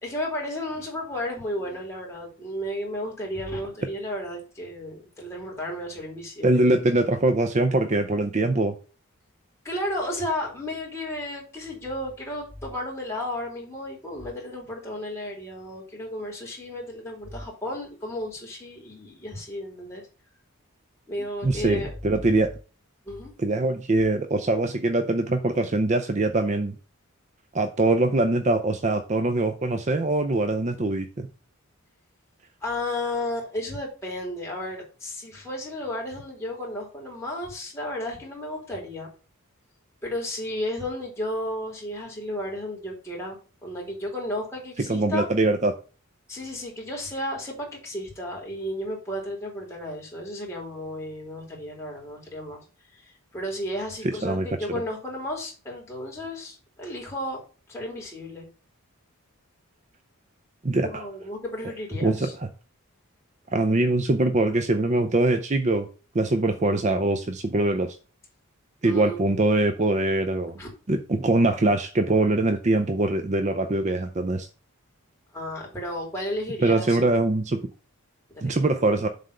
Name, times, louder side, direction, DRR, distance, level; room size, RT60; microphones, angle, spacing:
voice 1, 0.0-6.7 9.6-20.0 21.1-21.9 23.1-23.3 32.6-39.1 40.0-45.3 46.3-52.6 52.9-57.4 57.7-58.5 60.8-62.3 68.8-69.4 70.6-70.7 75.3-77.0 78.3-78.6, left 1 dB, 15° left, -3 dB, 2.9 m, -33 dB
voice 2, 6.4-8.7 21.4-22.5 23.4-26.7 27.5-31.3 44.9-45.8 54.0-54.5 54.7-54.8 60.6-61.0 62.0-62.3 63.5-65.9 66.1-68.0 68.8-70.5 70.9-74.5 76.6-77.6 78.4-79.1, right 2 dB, 30° right, 7 dB, 0.5 m, -23 dB
7.5 x 3.6 x 6.4 m, 0.36 s
head